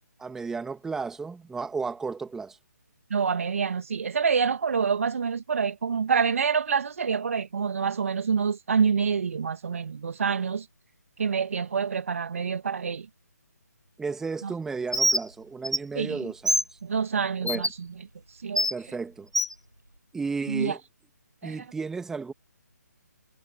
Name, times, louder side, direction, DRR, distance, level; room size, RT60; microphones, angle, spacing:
voice 1, 0.2-2.6 14.0-16.8 17.4-17.7 18.7-19.3 20.1-20.8 21.4-22.3, right 4 dB, 5° right, 2.3 m, -33 dB
voice 2, 3.1-10.7 11.2-13.1 14.4-14.5 16.0-16.3 16.8-17.7 18.4-18.7 20.5-20.8 21.4-21.6, right 6 dB, 50° right, 2.3 m, -27 dB
Bird, 14.9-15.2 15.6-15.8 16.5-16.6 17.5-17.7 18.6-18.7 19.3-19.5, equal, 90° right, 7.5 m, -23 dB
figure-of-eight pair, 145°, 9 cm